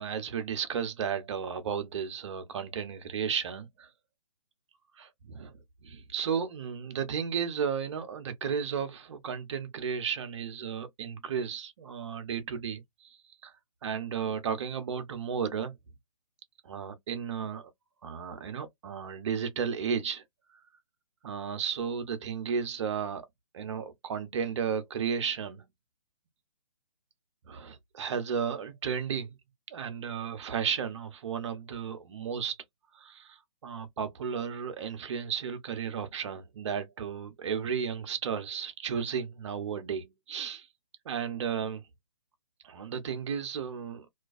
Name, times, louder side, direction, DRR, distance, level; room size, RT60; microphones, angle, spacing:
voice 1, 0.0-3.9 5.0-5.6 5.8-13.5 13.8-15.7 16.6-17.7 18.0-20.2 20.5-20.6 21.2-23.2 23.5-25.7 27.5-29.3 29.7-32.6 32.9-40.7 41.1-41.8 42.6-44.1, right 7 dB, 50° right, 0.7 m, -34 dB
2.4 x 2.2 x 2.4 m
figure-of-eight pair, 140°, 20 cm